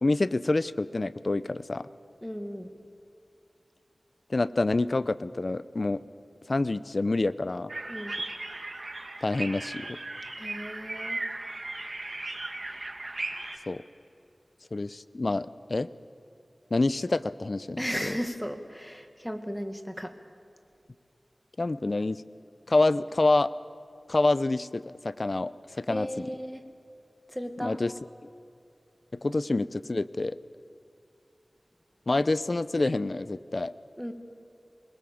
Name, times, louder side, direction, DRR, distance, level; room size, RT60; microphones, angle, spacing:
voice 1, 0.0-1.9 4.3-6.0 6.5-7.7 9.2-10.0 13.7-13.8 14.7-15.9 16.7-18.1 21.6-22.2 22.7-23.5 24.1-26.3 27.6-27.9 29.2-30.4 32.1-33.7, left 2 dB, 55° left, 15 dB, 0.6 m, -27 dB
voice 2, 2.2-2.7 7.9-8.2 10.4-11.2 17.8-20.1 25.9-26.6 27.3-27.8 34.0-34.1, equal, 5° left, 6 dB, 2.0 m, -35 dB
sound 1, 7.7-13.6, right 2 dB, 55° right, 1.9 m, -37 dB
22.5 x 20.5 x 7.2 m, 2.7 s
wide cardioid pair, 55°, 0 cm